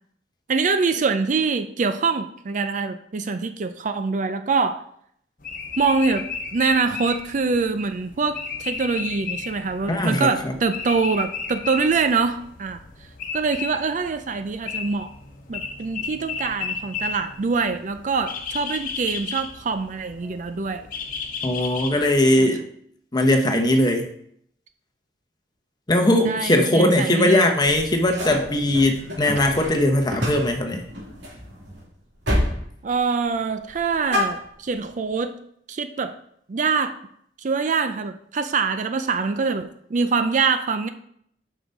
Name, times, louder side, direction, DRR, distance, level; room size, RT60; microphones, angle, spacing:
voice 1, 0.5-4.8 5.8-6.3 6.5-12.8 13.3-15.1 15.5-20.8 22.4-22.5 26.2-27.5 32.8-35.4 35.7-36.1 36.5-37.0 37.4-40.9, right 4 dB, 45° right, 9 dB, 0.4 m, -24 dB
sound 1, 5.4-22.2, left 5 dB, 50° left, 1.0 m, -34 dB
voice 2, 9.9-10.5 21.4-22.6 23.1-24.1 25.9-30.8, left 1 dB, 25° left, 4 dB, 0.9 m, -20 dB
sound 2, 27.6-31.8 32.2-32.6 32.9-33.4 33.7-34.9, left 1 dB, 80° right, 2.8 m, -29 dB
5.9 x 5.6 x 5.2 m, 0.68 s
head